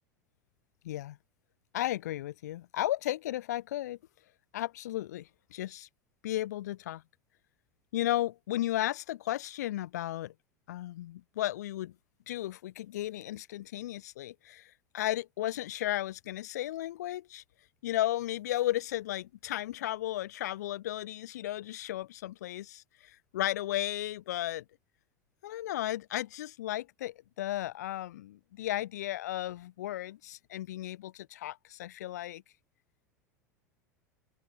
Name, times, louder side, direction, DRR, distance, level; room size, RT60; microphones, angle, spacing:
voice 1, 0.8-1.2 1.7-4.0 4.5-5.9 6.2-7.0 7.9-10.3 10.7-11.9 12.3-17.4 17.8-24.6 25.4-32.4, left 14 dB, 70° left, 0.4 m, -34 dB
open air
figure-of-eight pair, 80°, 9 cm